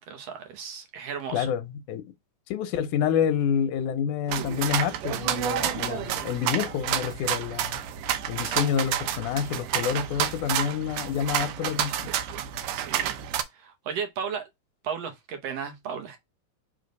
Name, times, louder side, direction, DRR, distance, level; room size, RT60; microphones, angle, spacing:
voice 1, 0.0-1.5 12.7-13.2 13.5-14.5 14.8-16.2, right 7 dB, 65° right, 1.7 m, -35 dB
voice 2, 1.3-2.0 2.5-7.8 8.3-12.0, left 8 dB, 75° left, 2.2 m, -28 dB
sound 1, 4.3-13.4, right 11 dB, 85° right, 2.3 m, -29 dB
5.1 x 3.9 x 5.2 m
omnidirectional pair, 3.7 m